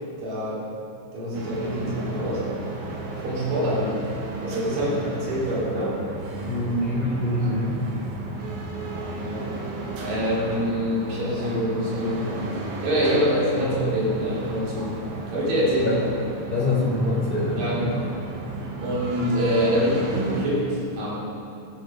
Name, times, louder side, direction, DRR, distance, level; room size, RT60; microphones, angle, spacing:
voice 1, 0.2-0.6 1.1-2.4 3.2-4.1 4.4-5.0 5.3-6.0 8.8-9.5 10.0-12.3 12.8-14.9 15.3-16.0 17.6-18.1 18.8-21.1, equal, 60° right, -7 dB, 4.7 m, -25 dB
sound 1, 1.3-20.5, right 3 dB, 85° right, 3.4 m, -34 dB
voice 2, 4.7-5.0 6.4-7.8 15.8-15.9 16.5-17.8, left 2 dB, 20° right, -7 dB, 2.3 m, -25 dB
16.0 x 8.4 x 4.9 m, 2.7 s
omnidirectional pair, 4.3 m